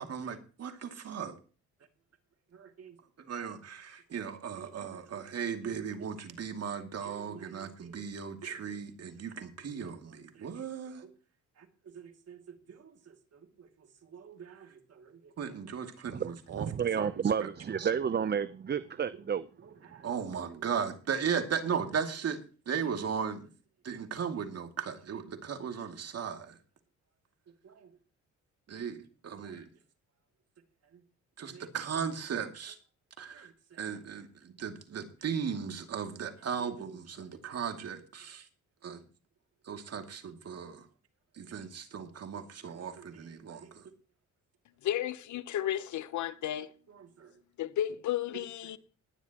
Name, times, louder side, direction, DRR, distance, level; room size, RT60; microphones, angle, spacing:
voice 1, 0.0-1.3 2.5-11.1 11.6-11.7 11.9-12.4 12.7-13.7 14.0-16.7 17.0-17.1 17.4-17.5 17.8-17.9 19.8-23.5 23.8-26.6 27.6-27.9 28.7-29.7 30.9-31.0 31.4-32.8 33.2-38.5 38.8-39.0 39.6-40.9 41.3-43.9 47.0-47.3, right 7 dB, 55° right, 2.5 m, -37 dB
voice 2, 16.6-19.5, right 7 dB, 35° right, 0.7 m, -31 dB
voice 3, 44.8-46.7 47.6-48.8, left 12 dB, 70° left, 1.0 m, -33 dB
20.0 x 10.5 x 3.0 m
cardioid pair, 90°, 30 cm